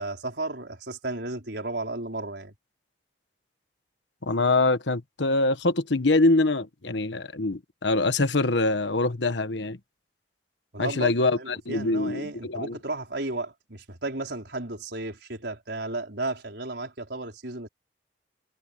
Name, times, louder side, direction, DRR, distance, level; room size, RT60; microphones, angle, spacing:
voice 1, 0.0-2.5 10.7-17.7, right 2 dB, 70° right, 4.9 m, -34 dB
voice 2, 4.2-9.8 10.8-12.8, left 2 dB, 90° left, 1.4 m, -24 dB
head